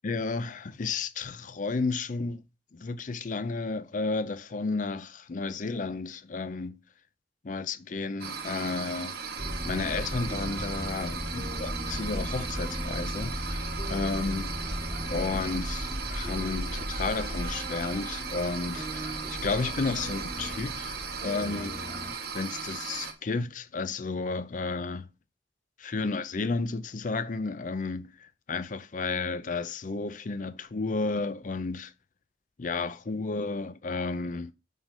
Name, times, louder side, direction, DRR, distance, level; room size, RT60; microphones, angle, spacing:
voice 1, 0.0-2.4 2.7-6.8 7.4-9.1 9.6-14.5 15.1-22.1 22.3-25.1 25.8-31.9 32.6-34.5, left 3 dB, 45° left, 0.5 m, -32 dB
sound 1, 8.2-23.1, right 5 dB, 60° right, 1.4 m, -37 dB
sound 2, 9.4-22.1, equal, 30° right, 2.8 m, -36 dB
7.2 x 3.8 x 5.1 m
head